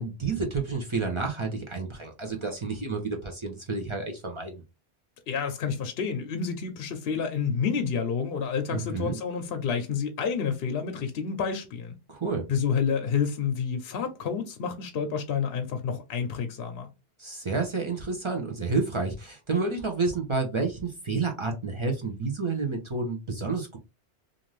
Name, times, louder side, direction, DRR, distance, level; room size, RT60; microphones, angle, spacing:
voice 1, 0.0-4.6 8.7-9.2 12.1-12.4 17.2-23.8, right 4 dB, 35° right, 0.5 m, -30 dB
voice 2, 5.3-12.0 12.5-16.9, left 6 dB, 65° left, 0.8 m, -29 dB
2.5 x 2.5 x 3.1 m
omnidirectional pair, 1.2 m